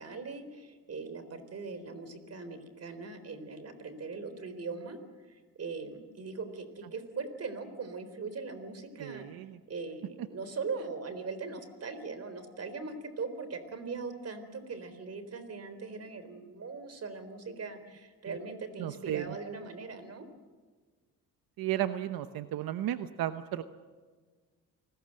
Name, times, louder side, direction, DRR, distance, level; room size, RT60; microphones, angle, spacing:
voice 1, 0.0-5.0 5.3-9.4 9.7-20.3, right 4 dB, 45° right, 11 dB, 4.0 m, -40 dB
voice 2, 9.0-9.6 18.2-18.4 18.8-19.4 21.6-23.6, right 12 dB, 85° right, 10 dB, 1.0 m, -34 dB
29.5 x 20.0 x 7.7 m, 1.5 s
cardioid pair, 110°, 34 cm